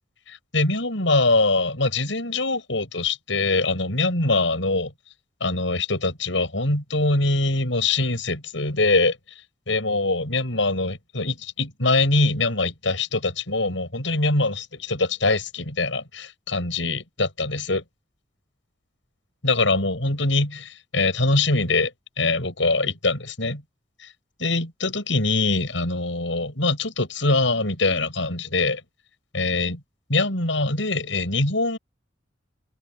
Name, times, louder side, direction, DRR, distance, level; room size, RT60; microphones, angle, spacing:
voice 1, 0.3-4.9 5.4-9.2 9.7-17.8 19.4-21.9 22.2-23.6 24.4-28.8 29.3-29.8 30.1-31.8, left 2 dB, 80° left, 7.1 m, -23 dB
open air
head